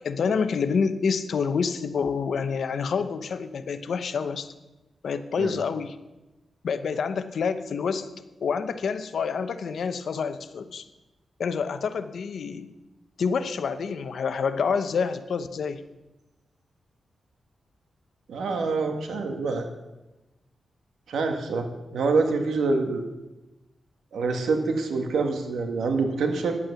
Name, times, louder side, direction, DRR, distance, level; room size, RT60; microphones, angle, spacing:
voice 1, 0.0-4.5 5.0-6.0 6.6-8.1 8.4-10.9 11.4-12.7 13.2-15.8, left 5 dB, 75° left, 10 dB, 0.8 m, -27 dB
voice 2, 18.3-19.7 21.1-23.0 24.1-26.6, right 4 dB, 90° right, 5 dB, 1.7 m, -26 dB
10.5 x 8.7 x 7.0 m, 1.0 s
cardioid pair, 85°, 0 cm